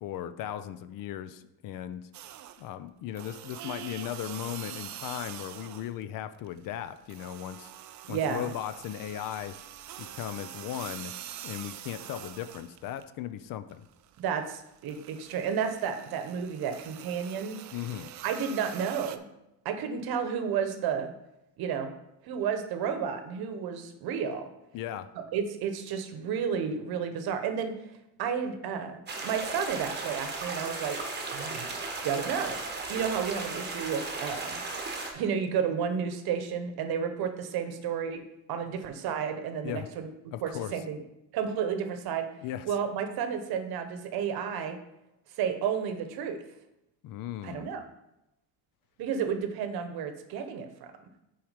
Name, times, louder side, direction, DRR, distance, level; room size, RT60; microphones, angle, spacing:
voice 1, 0.0-2.1 2.6-7.7 8.1-9.6 10.0-11.1 11.4-13.8 17.7-18.1 24.7-25.1 39.6-39.9 40.3-40.7 42.4-42.7 47.0-47.7, left 11 dB, 55° left, 12 dB, 0.5 m, -37 dB
sound 1, 2.1-2.7 3.1-6.0 6.3-13.1 13.5-19.2, right 11 dB, 45° right, 0.5 m, -45 dB
voice 2, 8.0-8.5 14.2-17.6 18.2-19.3 19.6-21.1 21.6-21.9 22.2-24.5 25.3-31.0 31.3-31.7 32.0-34.6 35.1-38.2 38.5-40.1 40.4-41.0 41.3-42.3 42.6-44.8 45.3-46.4 47.4-47.8 49.0-50.9, right 7 dB, 60° right, 8 dB, 1.0 m, -32 dB
sound 2, 29.1-35.1, right 3 dB, 25° right, 1.2 m, -36 dB
6.2 x 4.8 x 5.0 m, 0.89 s
cardioid pair, 135°, 41 cm